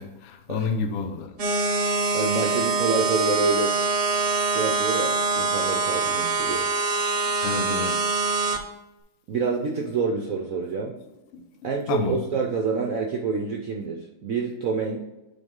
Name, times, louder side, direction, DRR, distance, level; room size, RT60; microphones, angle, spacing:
voice 1, 0.0-1.3 7.4-8.0 11.3-11.4 11.9-12.2, left 4 dB, 65° left, 6 dB, 0.7 m, -29 dB
sound 1, 1.4-8.6, right 3 dB, 90° right, 0.5 m, -24 dB
voice 2, 2.1-3.8 4.4-6.7 9.3-10.9 11.6-15.0, right 4 dB, 65° right, 1 dB, 0.8 m, -27 dB
9.0 x 3.9 x 3.7 m, 1.0 s
omnidirectional pair, 2.2 m